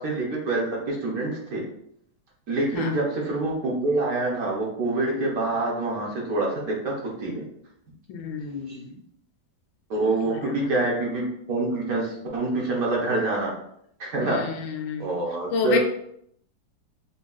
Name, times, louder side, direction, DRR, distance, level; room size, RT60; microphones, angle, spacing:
voice 1, 0.0-1.6 2.5-6.9 7.2-7.4 8.7-8.8 9.9-13.5 14.0-14.4 15.0-15.8, right 2 dB, 60° right, -3 dB, 1.1 m, -26 dB
voice 2, 8.1-9.0 10.2-10.7 14.2-15.1 15.5-15.8, left 5 dB, 90° left, 3 dB, 1.4 m, -30 dB
5.4 x 2.3 x 2.4 m, 0.72 s
omnidirectional pair, 2.1 m